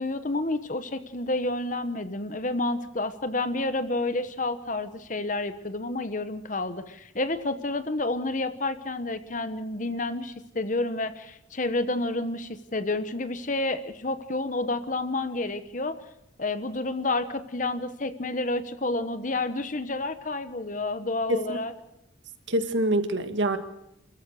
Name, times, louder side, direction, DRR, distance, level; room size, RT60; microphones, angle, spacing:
voice 1, 0.0-16.0 16.4-21.7, left 2 dB, 40° left, 11 dB, 1.1 m, -29 dB
voice 2, 22.5-23.6, right 1 dB, 65° right, 7 dB, 1.8 m, -25 dB
28.5 x 14.5 x 6.5 m, 0.85 s
head